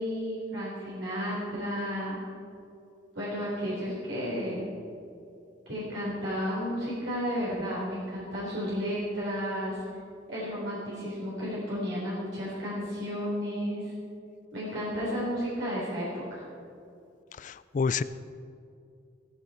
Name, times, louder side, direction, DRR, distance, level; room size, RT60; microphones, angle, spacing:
voice 1, 0.0-2.2 3.1-4.6 5.7-9.8 10.3-13.9 14.5-16.4, equal, 70° right, -7 dB, 4.1 m, -32 dB
voice 2, 17.4-18.0, left 5 dB, 40° left, 14 dB, 0.4 m, -28 dB
15.5 x 14.5 x 4.4 m, 2.5 s
head